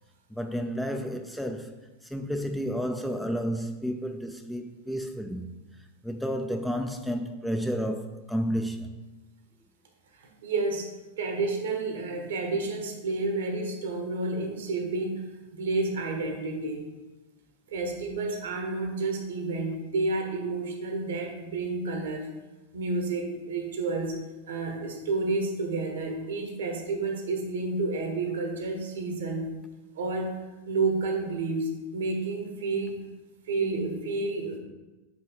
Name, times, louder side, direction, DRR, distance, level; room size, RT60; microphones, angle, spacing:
voice 1, 0.3-5.5 6.0-9.0, equal, ahead, 0.4 m, -31 dB
voice 2, 10.2-10.9 11.2-15.3 15.5-16.9 17.7-22.3 22.7-24.2 24.5-29.5 29.9-30.4 30.7-33.0 33.5-34.6, right 3 dB, 60° right, 1.1 m, -30 dB
7.6 x 3.2 x 4.5 m
figure-of-eight pair, 90°, 0 cm